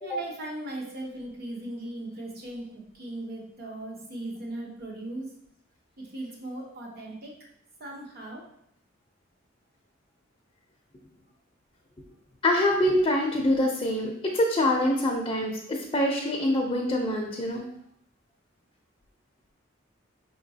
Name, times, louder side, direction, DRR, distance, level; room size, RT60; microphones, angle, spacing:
voice 1, 0.0-5.3 6.0-7.3 7.8-8.4, right 1 dB, 50° right, -1 dB, 1.0 m, -38 dB
voice 2, 12.4-17.6, left 1 dB, 25° left, -1 dB, 0.5 m, -25 dB
5.4 x 3.0 x 2.7 m, 0.73 s
head